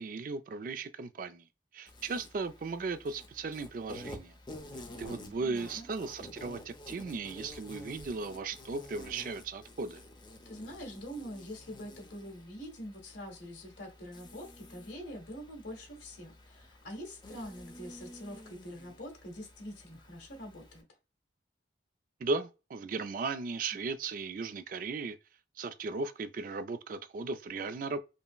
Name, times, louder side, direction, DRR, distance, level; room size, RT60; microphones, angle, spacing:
voice 1, 0.0-1.5 1.7-4.3 5.0-10.0 22.2-25.2 25.6-28.0, right 4 dB, 45° right, 0.3 m, -36 dB
Insect, 1.9-20.8, left 1 dB, 25° left, 0.6 m, -51 dB
voice 2, 4.9-5.9 10.4-20.8, equal, 70° left, 1.6 m, -45 dB
5.4 x 2.0 x 2.3 m
head